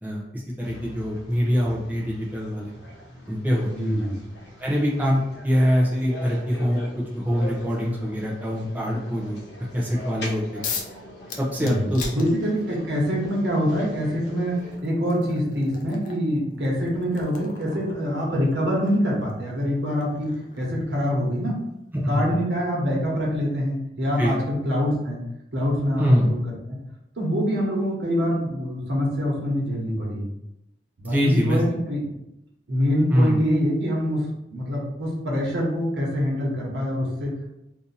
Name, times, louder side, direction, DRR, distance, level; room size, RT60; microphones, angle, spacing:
voice 1, 0.0-2.7 3.3-3.7 4.6-9.4 9.7-10.6 11.4-12.0 21.9-22.3 24.2-24.4 26.0-26.3 31.0-31.6 33.1-33.4, equal, 10° right, -4 dB, 0.5 m, -23 dB
sound 1, 0.6-14.8, left 1 dB, 75° left, 0.9 m, -42 dB
voice 2, 3.7-4.1 11.6-11.9 12.1-20.3 20.6-21.6 22.1-25.2 25.5-26.4 26.7-26.8 27.2-30.3 31.0-32.1 32.7-34.2 34.5-37.5, equal, 80° right, -3 dB, 1.1 m, -25 dB
sound 2, 10.6-11.0 11.3-12.8 14.0-14.1 14.6-21.2, left 5 dB, 45° left, 0.4 m, -39 dB
2.7 x 2.5 x 4.0 m, 0.86 s
head